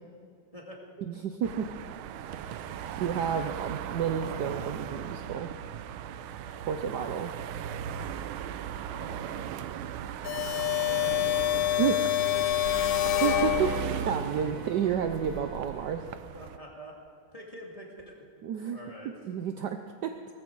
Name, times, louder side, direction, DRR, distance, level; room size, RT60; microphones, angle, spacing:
voice 1, 1.1-1.7 3.0-5.5 6.7-7.3 11.8-12.2 13.2-16.0 18.4-18.8 19.2-20.1, right 8 dB, 70° right, 7 dB, 1.1 m, -30 dB
sound 1, 1.4-16.6, right 9 dB, 85° right, 1.5 m, -37 dB
voice 2, 6.1-6.9 9.0-9.9 10.4-10.6 10.9-11.4 12.3-12.5 16.3-16.9 17.3-18.2 18.7-19.1, equal, 15° left, -2 dB, 2.1 m, -48 dB
sound 2, 10.2-14.1, left 15 dB, 65° left, 0.9 m, -27 dB
Wind instrument woodwind instrument, 12.7-16.1, equal, 40° left, 1.3 m, -51 dB
18.5 x 14.0 x 4.7 m, 2.2 s
omnidirectional pair, 2.3 m